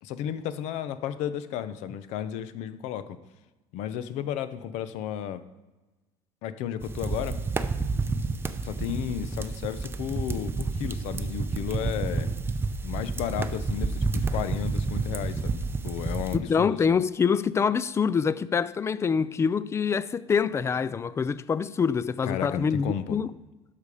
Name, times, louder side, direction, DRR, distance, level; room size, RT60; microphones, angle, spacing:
voice 1, 0.0-3.2 3.7-5.4 6.4-7.4 8.6-12.3 12.8-17.0 22.2-23.2, left 10 dB, 70° left, 0.7 m, -33 dB
sound 1, 6.8-16.4, right 3 dB, 20° right, 0.6 m, -30 dB
voice 2, 16.3-23.3, left 6 dB, 25° left, 0.4 m, -25 dB
12.0 x 5.2 x 4.9 m
cardioid pair, 115°, 12 cm